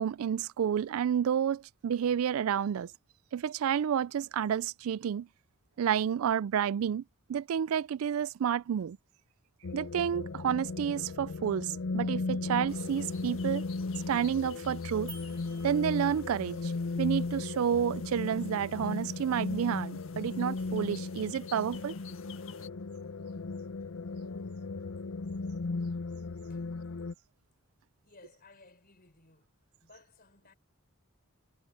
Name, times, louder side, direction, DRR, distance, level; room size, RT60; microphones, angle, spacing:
voice 1, 0.0-2.9 3.3-5.3 5.8-7.0 7.3-9.0 9.7-13.6 14.0-15.1 15.6-16.7 17.0-21.9, right 8 dB, 80° right, 0.3 m, -30 dB
sound 1, 9.6-27.1, left 3 dB, 85° left, 0.7 m, -36 dB
sound 2, 12.7-22.7, left 9 dB, 65° left, 1.6 m, -54 dB
sound 3, 15.1-16.6, right 5 dB, 20° right, 2.9 m, -51 dB
voice 2, 28.0-29.5 29.8-30.5, left 3 dB, 45° left, 4.6 m, -58 dB
head